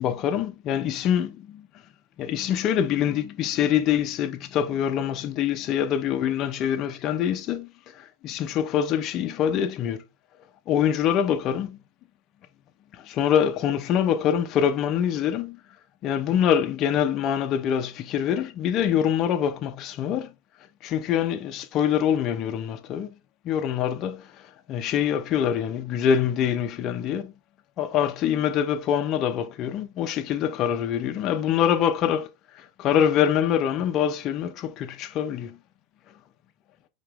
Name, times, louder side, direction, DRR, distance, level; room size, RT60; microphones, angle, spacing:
voice 1, 0.0-1.6 2.2-10.0 10.7-11.8 12.9-15.6 16.0-20.3 20.8-23.1 23.4-27.3 27.8-32.3 32.5-35.6, left 9 dB, 30° left, 0.6 m, -25 dB
4.8 x 2.9 x 3.4 m
supercardioid pair, 160°, 0 cm